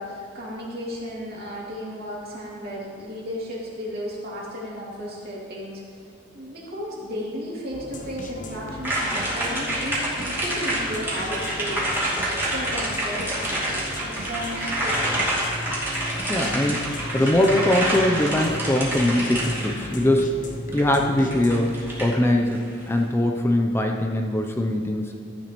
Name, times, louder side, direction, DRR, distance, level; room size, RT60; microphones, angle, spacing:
voice 1, 0.0-5.8 6.3-15.5, equal, 55° right, -5 dB, 2.7 m, -34 dB
sound 1, 7.7-21.8, left 1 dB, 45° left, 0.9 m, -36 dB
sound 2, 8.8-19.9 20.7-20.8 21.2-22.6 22.8-22.9, right 1 dB, 15° right, 2.5 m, -27 dB
voice 2, 16.3-16.9 17.1-20.4 20.7-21.7 22.0-25.2, left 1 dB, 15° left, 3 dB, 0.5 m, -22 dB
14.0 x 8.8 x 3.0 m, 2.4 s
head